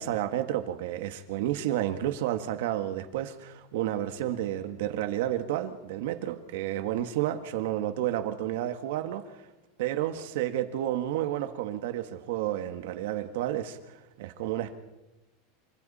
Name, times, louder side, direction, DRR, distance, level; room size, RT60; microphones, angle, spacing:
voice 1, 0.0-9.4 9.8-13.8 14.2-14.8, right 12 dB, 70° right, 1.9 m, -31 dB
28.0 x 25.5 x 4.4 m
supercardioid pair, 165°, 0 cm